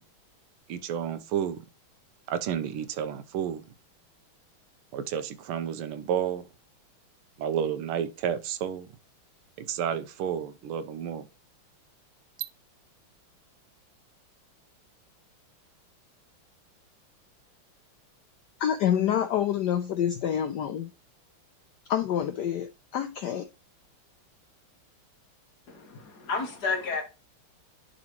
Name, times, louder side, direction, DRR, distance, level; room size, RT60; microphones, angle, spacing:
voice 1, 0.7-1.6 2.3-3.6 4.9-6.4 7.4-8.9 9.6-11.3, right 9 dB, 90° right, 1.6 m, -31 dB
voice 2, 18.6-20.9 21.9-23.5, left 9 dB, 75° left, 0.9 m, -27 dB
voice 3, 25.7-27.0, left 4 dB, 50° left, 1.8 m, -31 dB
10.5 x 4.0 x 3.0 m
omnidirectional pair, 2.3 m